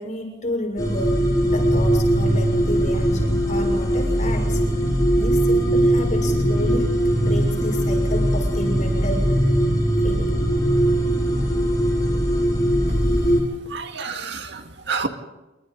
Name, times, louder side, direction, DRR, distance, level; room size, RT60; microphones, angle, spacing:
voice 1, 0.0-4.6 5.2-6.9 7.2-9.3 10.0-10.4, left 1 dB, 40° left, 3 dB, 6.4 m, -30 dB
sound 1, 0.8-13.4, right 1 dB, 20° left, 6.1 m, -20 dB
voice 2, 13.7-15.1, right 4 dB, 65° right, 6 dB, 2.1 m, -29 dB
27.5 x 24.5 x 4.0 m, 1.1 s
head